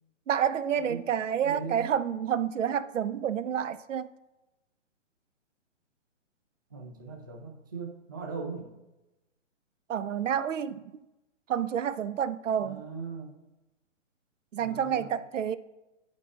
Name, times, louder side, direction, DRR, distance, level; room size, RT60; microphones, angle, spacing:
voice 1, 0.3-4.1 9.9-10.8 11.5-12.8 14.5-15.6, right 9 dB, 75° right, 0.5 m, -29 dB
voice 2, 1.4-1.9 6.7-8.7 12.6-13.3 14.6-15.1, right 4 dB, 20° right, 0.3 m, -39 dB
10.5 x 4.7 x 2.4 m
figure-of-eight pair, 135°, 37 cm